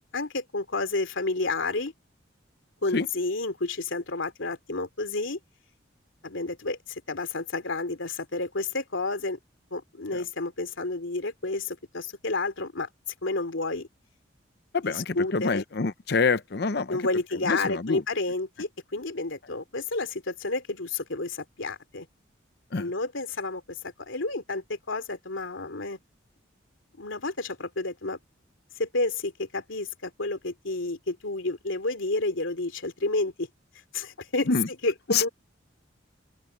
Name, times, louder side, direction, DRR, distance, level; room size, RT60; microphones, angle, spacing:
voice 1, 0.0-1.9 2.8-5.4 6.2-9.4 9.7-12.9 13.2-13.9 14.8-15.6 16.9-22.1 22.8-26.0 27.0-28.2 28.8-33.5 33.9-34.5 34.8-35.3, left 2 dB, 85° left, 3.0 m, -30 dB
voice 2, 14.7-17.0 17.5-18.0 22.7-22.9 34.5-34.7 35.1-35.3, left 4 dB, 55° left, 0.7 m, -26 dB
open air
head